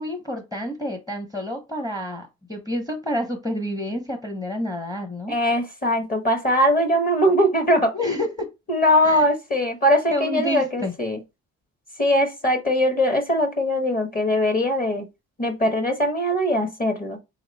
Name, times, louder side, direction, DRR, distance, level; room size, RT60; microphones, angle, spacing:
voice 1, 0.0-5.3 7.9-8.5 9.0-9.2 10.1-10.9, left 1 dB, 10° left, 0.8 m, -29 dB
voice 2, 5.3-7.9 8.7-11.2 12.0-15.1 15.4-17.2, equal, 30° left, 1.1 m, -21 dB
3.4 x 2.9 x 4.0 m
cardioid pair, 90°, 30 cm